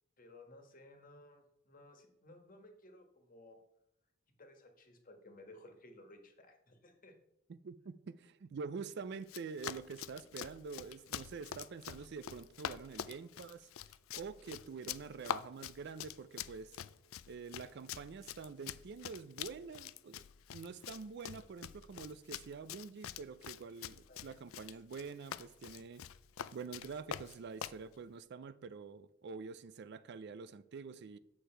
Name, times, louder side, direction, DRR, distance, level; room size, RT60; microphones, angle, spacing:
voice 1, 0.2-3.6 4.4-7.1 24.1-24.3, left 1 dB, 45° left, 1.5 m, -57 dB
voice 2, 7.5-13.7 14.1-16.7 17.3-20.2 20.5-26.0 26.5-31.2, right 5 dB, 55° right, 0.4 m, -46 dB
Run, 9.2-27.8, left 9 dB, 90° left, 0.4 m, -46 dB
8.8 x 6.6 x 4.4 m
head